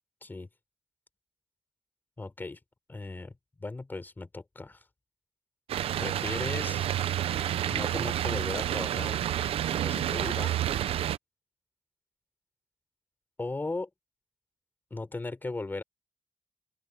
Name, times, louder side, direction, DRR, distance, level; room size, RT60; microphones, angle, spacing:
voice 1, 2.2-2.6 2.9-4.8 6.0-6.9 7.7-9.2 9.8-10.6 13.4-13.9 14.9-15.8, left 3 dB, 20° left, 5.1 m, -37 dB
sound 1, 5.7-11.2, right 11 dB, 90° right, 0.6 m, -29 dB
open air
wide cardioid pair, 140°, 10 cm